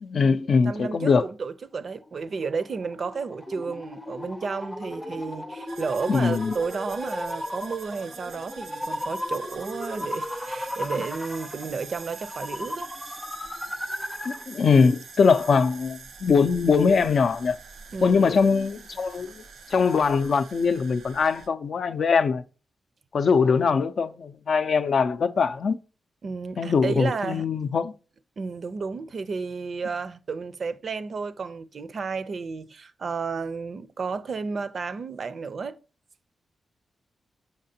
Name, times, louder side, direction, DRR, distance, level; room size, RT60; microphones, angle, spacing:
voice 1, 0.0-1.2 6.1-6.5 14.2-17.6 18.0-19.4 19.7-22.4 23.1-25.8 26.6-27.9, left 5 dB, 65° left, 0.4 m, -22 dB
voice 2, 0.6-12.9 17.9-18.3 23.3-23.4 26.2-27.5 28.4-35.8, right 5 dB, 60° right, 0.4 m, -32 dB
sound 1, 1.8-14.5, left 1 dB, 15° left, 0.5 m, -36 dB
sound 2, 5.7-21.5, right 5 dB, 85° right, 0.8 m, -45 dB
6.5 x 5.7 x 2.7 m
cardioid pair, 75°, 0 cm